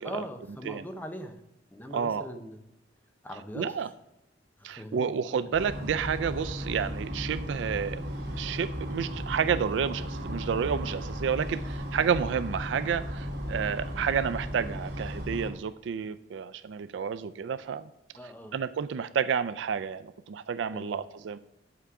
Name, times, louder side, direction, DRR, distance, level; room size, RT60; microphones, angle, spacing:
voice 1, 0.0-1.4 1.7-2.6 3.2-3.9 4.6-5.1 18.1-18.6 20.7-21.0, equal, 10° left, 6 dB, 0.7 m, -41 dB
voice 2, 1.9-2.3 3.6-3.9 4.6-8.0 8.4-17.9 18.5-21.4, right 7 dB, 90° right, 12 dB, 0.4 m, -30 dB
sound 1, 5.5-15.5, equal, 70° right, 1.8 m, -35 dB
8.0 x 5.8 x 4.8 m, 0.87 s
head